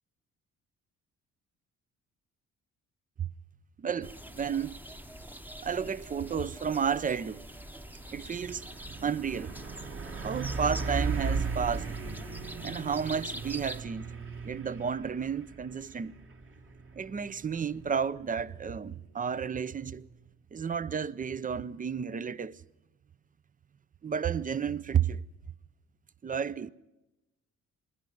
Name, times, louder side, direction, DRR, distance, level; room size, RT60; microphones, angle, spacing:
voice 1, 3.8-4.8 5.6-7.4 8.1-8.6 9.0-9.5 10.2-11.9 12.6-14.1 14.4-16.1 17.0-20.1 20.5-22.6 24.0-25.2 26.2-26.7, right 7 dB, 25° right, 0.6 m, -32 dB
sound 1, 4.0-13.8, right 1 dB, 5° right, 1.0 m, -45 dB
Truck, 7.1-7.2 7.5-20.1, right 4 dB, 40° right, 2.0 m, -38 dB
26.5 x 11.0 x 9.4 m
cardioid pair, 90°, 30 cm